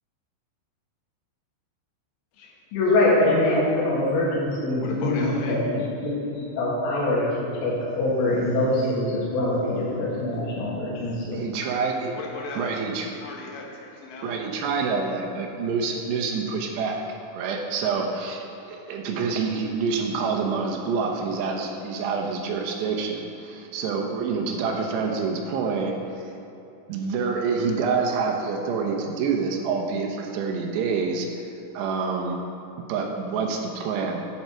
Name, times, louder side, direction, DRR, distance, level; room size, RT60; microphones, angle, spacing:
voice 1, 2.7-11.4, left 1 dB, 85° left, -6 dB, 4.3 m, -24 dB
voice 2, 4.8-5.6 12.1-12.8 13.1-14.4 14.8-14.9, left 3 dB, 70° left, -1 dB, 2.1 m, -36 dB
voice 3, 11.3-12.1 12.6-13.2 14.2-17.0 17.3-26.3 26.9-31.3 31.7-32.4 32.9-34.2, right 5 dB, 75° right, 2 dB, 2.8 m, -27 dB
10.5 x 8.6 x 4.4 m, 2.9 s
omnidirectional pair, 5.6 m